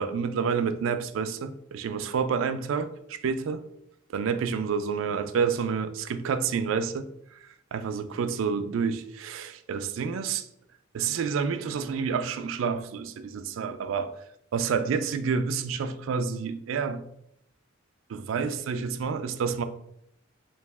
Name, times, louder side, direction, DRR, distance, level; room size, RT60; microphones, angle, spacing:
voice 1, 0.0-3.6 4.1-7.1 7.7-10.4 10.9-14.2 14.5-17.1 18.1-19.6, right 6 dB, 70° right, 0.3 m, -29 dB
3.1 x 2.8 x 3.3 m
head